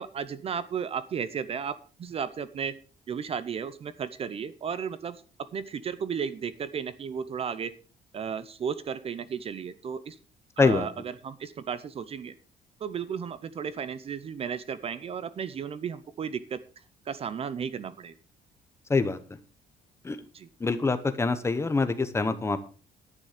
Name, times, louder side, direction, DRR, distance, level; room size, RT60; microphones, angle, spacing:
voice 1, 0.0-2.8 3.1-7.7 8.1-10.2 10.6-12.3 12.8-16.6 17.1-18.2 20.3-20.5, right 7 dB, 35° right, 15 dB, 0.6 m, -34 dB
voice 2, 20.6-22.6, left 4 dB, 15° left, 10 dB, 0.9 m, -25 dB
11.0 x 9.2 x 5.0 m, 0.37 s
cardioid pair, 165°, 17 cm